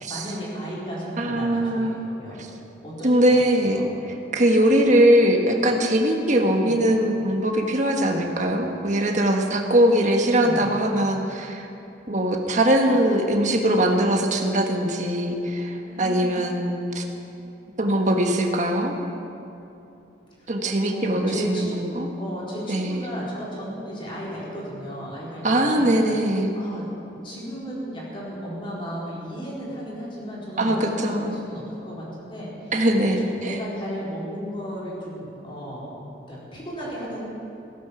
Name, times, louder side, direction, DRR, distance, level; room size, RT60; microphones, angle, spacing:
voice 1, 0.1-2.4 2.8-3.2 3.6-3.9 6.6-6.8 10.4-10.7 15.9-16.5 20.9-21.8 22.2-25.9 26.5-26.8 27.1-32.7 33.0-35.9 36.3-37.2, equal, 30° left, -6 dB, 4.4 m, -34 dB
voice 2, 1.2-2.0 2.4-2.5 3.0-3.8 4.3-11.7 12.1-17.0 17.8-18.9 20.5-22.1 22.7-23.0 25.4-26.5 30.6-31.3 32.7-33.5, right 1 dB, 45° right, 3 dB, 1.5 m, -21 dB
16.5 x 11.0 x 7.1 m, 2.8 s
head